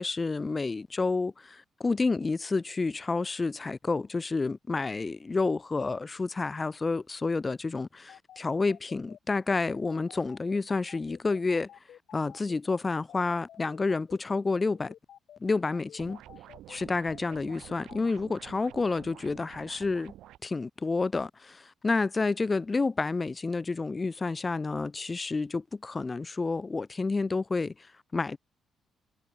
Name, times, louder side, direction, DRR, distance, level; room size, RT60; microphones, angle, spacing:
voice 1, 0.0-11.7 12.1-14.9 15.4-16.2 16.7-20.1 20.4-28.4, left 3 dB, 20° left, 0.5 m, -29 dB
sound 1, 8.1-18.0, left 11 dB, 65° left, 1.9 m, -51 dB
sound 2, 16.0-20.4, right 13 dB, 85° right, 2.2 m, -49 dB
cardioid pair, 145°, 0 cm